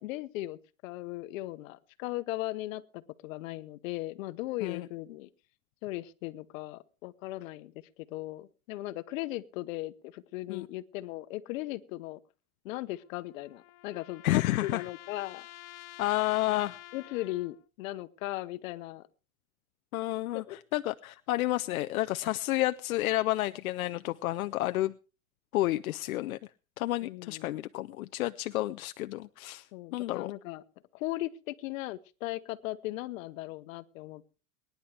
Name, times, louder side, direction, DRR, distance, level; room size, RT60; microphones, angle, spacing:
voice 1, 0.0-5.3 5.8-7.7 8.1-12.2 12.6-15.5 16.9-19.1 20.3-20.6 27.0-27.6 29.7-30.6 30.9-34.4, left 17 dB, 70° left, 15 dB, 1.1 m, -38 dB
sound 1, 12.9-17.6, left 17 dB, 40° left, 0.6 m, -50 dB
voice 2, 14.2-14.8 16.0-16.8 19.9-24.9 25.5-26.4 26.8-29.7 29.9-30.3, left 16 dB, 90° left, 11 dB, 0.6 m, -30 dB
23.0 x 10.5 x 3.4 m, 0.33 s
supercardioid pair, 110°, 41 cm